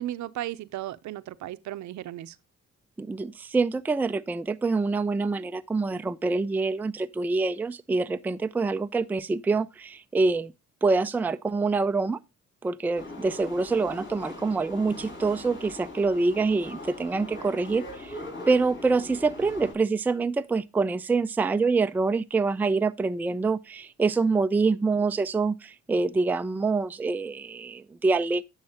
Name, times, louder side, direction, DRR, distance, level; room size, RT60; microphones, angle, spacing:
voice 1, 0.0-2.4, right 13 dB, 70° right, 0.6 m, -35 dB
voice 2, 3.0-10.5 10.8-12.2 12.6-18.2 18.5-28.4, right 3 dB, 5° right, 0.3 m, -26 dB
sound 1, 12.9-19.7, left 2 dB, 40° left, 6.4 m, -41 dB
9.7 x 7.2 x 2.8 m
cardioid pair, 90°, 30 cm